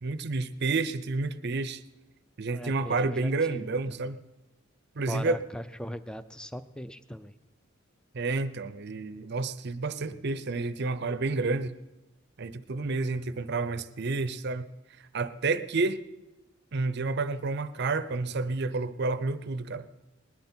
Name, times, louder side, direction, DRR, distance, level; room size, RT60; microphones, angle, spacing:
voice 1, 0.0-1.8 2.4-4.2 5.0-5.4 8.1-11.7 12.4-14.7 15.1-16.0 16.7-19.9, right 3 dB, 55° right, 0.6 m, -30 dB
voice 2, 2.5-4.0 5.1-7.3, equal, 5° left, 0.5 m, -39 dB
20.0 x 11.5 x 4.4 m
head